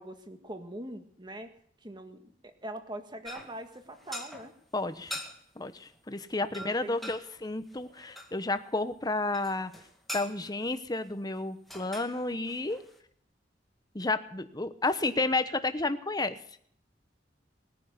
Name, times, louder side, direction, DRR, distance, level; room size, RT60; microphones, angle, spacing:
voice 1, 0.0-1.5 1.8-4.5 6.5-7.1, right 1 dB, 25° right, 7 dB, 1.7 m, -42 dB
sound 1, 3.2-4.5 4.9-5.4 5.8-6.0 6.2-6.3 6.5-8.3 9.3-10.7 11.4-11.5 11.7-13.0, left 1 dB, ahead, 2.1 m, -43 dB
voice 2, 4.7-5.2 5.6-9.7 10.1-12.8 13.9-16.4, left 2 dB, 20° left, 10 dB, 1.0 m, -31 dB
20.0 x 10.0 x 6.7 m, 0.64 s
head